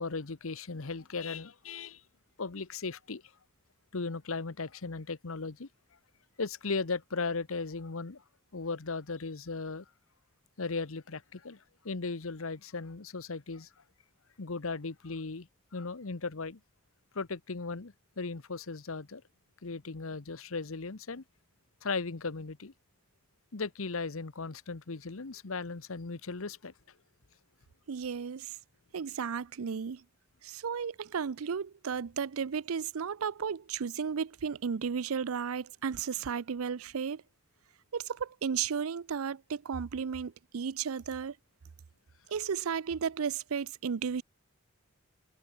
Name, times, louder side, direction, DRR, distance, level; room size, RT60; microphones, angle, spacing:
voice 1, 0.0-2.0 2.4-3.2 3.9-5.7 6.4-8.2 8.5-9.8 10.6-13.7 14.4-16.6 17.1-19.2 19.6-21.2 21.8-22.7 23.5-26.7, left 4 dB, 75° left, 1.0 m, -37 dB
voice 2, 27.9-28.6 28.9-30.0 30.4-37.2 37.9-41.3 42.3-44.2, right 6 dB, 80° right, 0.5 m, -34 dB
head